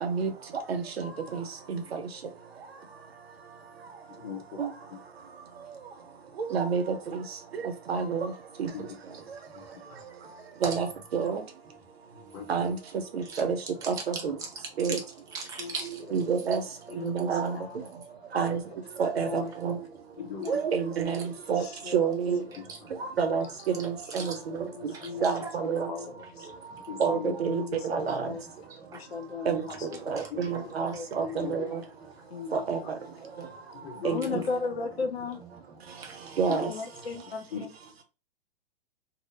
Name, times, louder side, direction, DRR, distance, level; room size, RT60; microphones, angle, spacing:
voice 1, 4.2-4.6 4.9-5.0 8.7-8.9 9.5-9.6 12.3-12.5 14.9-15.0 20.2-20.6 26.9-27.4 30.3-30.5 31.4-31.7 32.8-32.9 33.7-34.4 36.5-36.7 37.5-37.7, left 6 dB, 45° left, 0.8 m, -38 dB
voice 2, 7.9-8.3 8.6-8.7 10.6-10.9 11.1-11.4 12.5-12.8 13.1-13.6 13.9-14.0 14.2-14.3 14.8-15.0 16.1-16.6 17.0-17.5 18.3-18.6 19.0-19.8 20.5-21.6 21.9-22.4 23.2-23.4 23.8-24.3 25.2-25.4 25.6-25.9 27.0-28.2 29.5-29.6 30.1-31.6 32.5-32.8 34.0-34.2 36.4-36.7, right 6 dB, 85° right, 0.7 m, -27 dB
voice 3, 9.5-10.0 10.6-10.8 12.1-12.7 13.2-13.4 13.8-15.0 15.3-16.0 16.5-16.6 21.2-21.3 22.5-23.0 23.8-24.5 24.9-25.5 26.1-26.8 27.8-28.3 28.7-29.0 30.2-30.5 30.9-31.4 32.2-32.3 35.4-36.2, right 4 dB, 10° right, 0.4 m, -42 dB
voice 4, 16.9-17.8 19.0-19.5 20.2-20.6 21.6-22.0 22.5-22.6 24.1-24.3 24.8-25.3 25.6-26.5 27.1-28.4 28.9-30.2 30.9-31.7 32.3-32.6 34.1-35.4 36.7-37.7, left 4 dB, 85° left, 0.7 m, -37 dB
2.1 x 2.0 x 3.1 m
hypercardioid pair, 120°, 30 cm